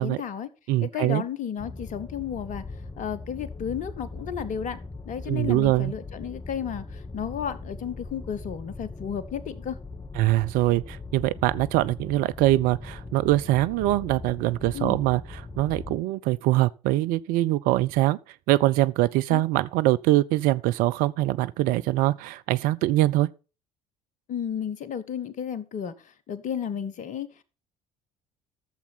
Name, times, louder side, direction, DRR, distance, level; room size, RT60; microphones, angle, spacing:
voice 1, 0.0-0.5 0.8-2.6 3.0-4.8 5.0-9.8 14.7-15.0 19.3-19.4 24.3-25.9 26.3-27.3, left 8 dB, 45° left, 1.2 m, -33 dB
voice 2, 0.7-1.2 5.3-5.9 10.2-18.2 18.5-23.3, right 16 dB, 50° right, 0.5 m, -23 dB
sound 1, 1.6-16.0, left 3 dB, 20° left, 1.0 m, -40 dB
13.5 x 7.1 x 4.1 m
figure-of-eight pair, 55°, 18 cm